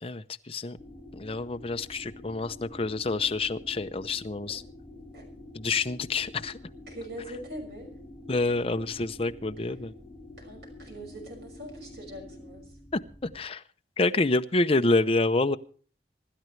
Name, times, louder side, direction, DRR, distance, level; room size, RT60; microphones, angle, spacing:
voice 1, 0.0-0.8 1.1-4.6 5.5-6.6 8.3-9.9 12.9-13.0 13.3-13.6 14.0-15.6, left 3 dB, 35° left, 9 dB, 0.7 m, -27 dB
sound 1, 0.8-13.4, left 1 dB, 10° left, 3.9 m, -47 dB
voice 2, 6.9-7.9 10.4-12.8, equal, 65° right, 3 dB, 6.1 m, -43 dB
26.0 x 12.0 x 3.3 m, 0.44 s
head